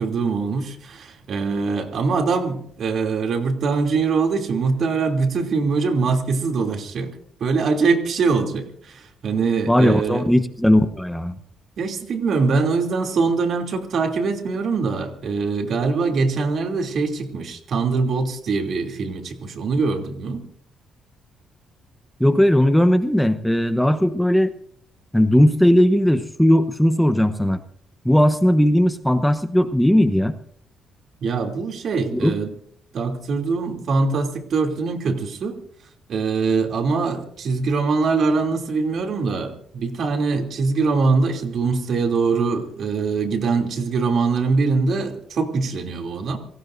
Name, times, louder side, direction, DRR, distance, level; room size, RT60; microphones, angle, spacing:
voice 1, 0.0-7.1 7.4-10.3 11.8-20.4 31.2-32.5 32.9-35.6 36.1-46.4, right 4 dB, 60° right, 4 dB, 2.9 m, -23 dB
voice 2, 9.7-11.4 22.2-24.5 25.1-27.6 28.0-30.4 32.1-32.4, equal, 5° left, 9 dB, 1.0 m, -17 dB
27.5 x 17.5 x 2.7 m, 0.65 s
cardioid pair, 90°, 0 cm